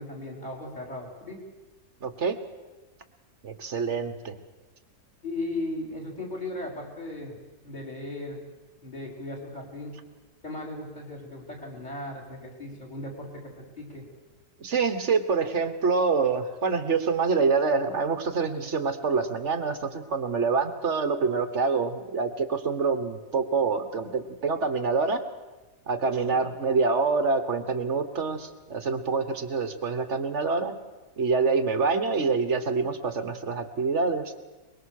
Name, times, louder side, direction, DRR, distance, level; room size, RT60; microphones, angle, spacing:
voice 1, 0.0-1.4 5.2-7.4 7.6-8.4 8.8-10.0 10.4-14.0 26.2-26.4, left 2 dB, 25° left, 0 dB, 5.3 m, -37 dB
voice 2, 2.0-2.4 3.4-4.3 14.6-25.2 25.9-30.8 31.2-34.3, right 4 dB, 45° right, 10 dB, 1.6 m, -26 dB
24.0 x 21.5 x 6.6 m, 1.2 s
omnidirectional pair, 1.8 m